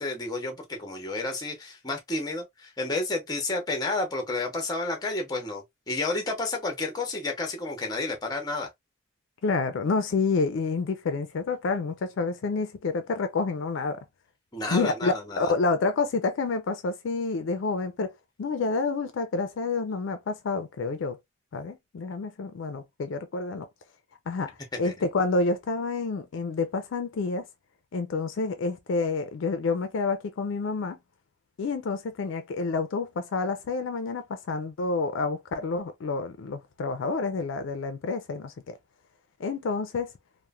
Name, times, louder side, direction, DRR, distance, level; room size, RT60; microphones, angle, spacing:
voice 1, 0.0-8.7 14.5-15.5 24.8-24.9, left 2 dB, 20° left, 0.7 m, -31 dB
voice 2, 9.4-14.0 14.7-18.1 18.4-21.2 21.5-23.7 24.3-27.5 27.9-31.0 31.6-38.8 39.4-40.1, left 3 dB, 65° left, 0.4 m, -28 dB
3.0 x 2.0 x 2.2 m
head